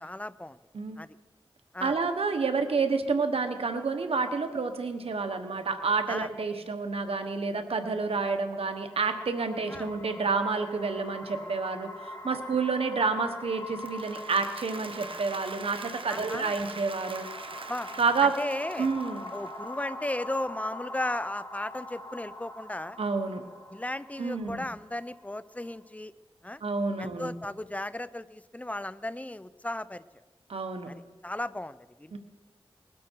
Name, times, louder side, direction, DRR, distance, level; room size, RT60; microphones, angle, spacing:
voice 1, 0.0-0.6 1.0-1.1 1.7-2.0 6.1-6.3 9.7-9.9 16.1-16.6 17.7-17.9 18.2-18.9 19.3-23.0 23.7-26.1 26.4-26.6 27.0-30.0 30.9-32.2, left 1 dB, 15° left, 16 dB, 0.6 m, -35 dB
voice 2, 1.8-17.3 18.0-18.3 18.8-19.3 23.0-23.4 24.2-24.7 26.6-27.3 30.5-30.9 32.1-32.2, right 4 dB, 90° right, 7 dB, 1.3 m, -29 dB
sound 1, 8.7-25.8, left 1 dB, 35° left, 2.9 m, -43 dB
Applause, 13.6-19.8, right 4 dB, 65° right, 1.0 m, -43 dB
21.0 x 12.0 x 4.6 m, 1.3 s
cardioid pair, 50°, 10 cm